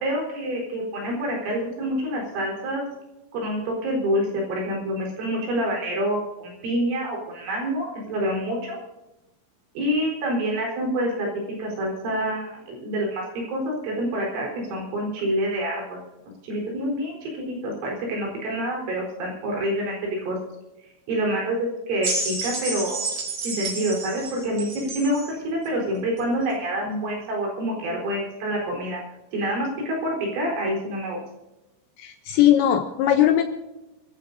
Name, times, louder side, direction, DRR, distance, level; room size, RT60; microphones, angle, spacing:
voice 1, 0.0-2.8 3.3-8.8 9.7-11.3 11.6-16.0 16.4-20.0 20.3-20.4 21.1-23.0 23.4-24.7 24.9-29.0 29.3-31.2, equal, 70° right, -1 dB, 6.6 m, -27 dB
sound 1, 22.0-25.3 26.2-26.3, right 2 dB, 30° right, 4.0 m, -30 dB
voice 2, 32.0-33.4, left 11 dB, 80° left, 6 dB, 2.7 m, -19 dB
25.5 x 14.0 x 2.7 m, 1.0 s
omnidirectional pair, 5.8 m